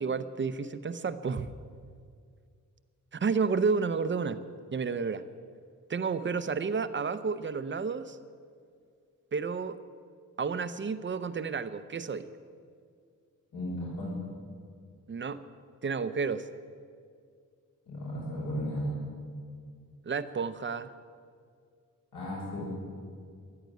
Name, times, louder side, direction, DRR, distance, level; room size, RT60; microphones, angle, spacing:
voice 1, 0.0-1.5 3.1-4.4 4.7-5.2 5.9-8.2 9.3-9.8 10.4-12.3 15.1-15.4 15.8-16.5 20.1-20.9, right 5 dB, 35° right, 12 dB, 0.6 m, -31 dB
voice 2, 13.5-14.1 17.9-19.0 22.1-22.7, equal, 75° left, -7 dB, 5.2 m, -34 dB
14.5 x 11.0 x 9.3 m, 2.2 s
wide cardioid pair, 155°, 32 cm